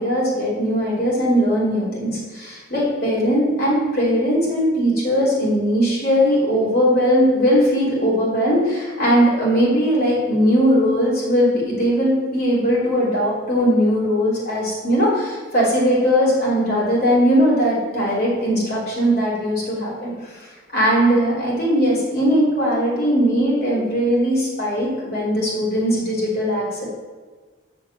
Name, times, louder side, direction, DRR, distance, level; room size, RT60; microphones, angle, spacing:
voice 1, 0.0-26.9, equal, 50° left, -6 dB, 3.6 m, -19 dB
7.2 x 6.6 x 7.7 m, 1.4 s
head